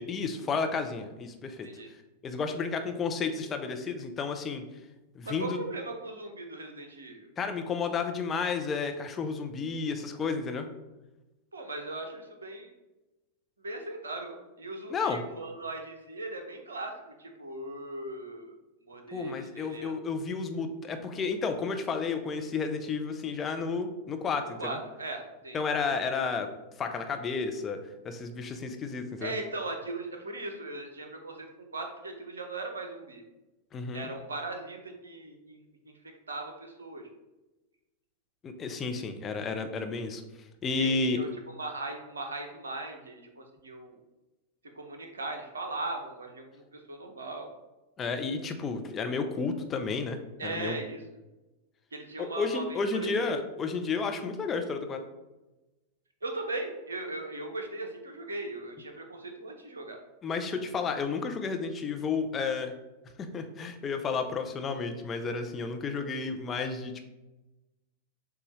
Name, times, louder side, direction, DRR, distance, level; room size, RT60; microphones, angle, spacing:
voice 1, 0.0-1.7 2.2-4.6 5.1-5.6 7.4-10.7 14.9-15.2 19.1-24.8 25.5-26.5 26.8-27.8 28.0-29.3 33.7-34.1 38.4-40.2 40.6-41.2 48.0-50.8 52.2-55.0 60.2-62.7 63.2-67.0, left 4 dB, 25° left, 6 dB, 0.5 m, -32 dB
voice 2, 5.2-7.3 11.5-12.7 13.6-16.9 17.2-18.5 18.9-19.9 24.6-25.6 29.2-33.2 33.9-35.6 35.9-36.0 36.3-37.1 40.7-44.0 44.7-47.5 50.4-51.0 51.9-53.3 56.2-60.0, right 2 dB, 70° right, 4 dB, 0.7 m, -38 dB
6.7 x 2.4 x 3.1 m, 1.1 s
figure-of-eight pair, 90°, 0 cm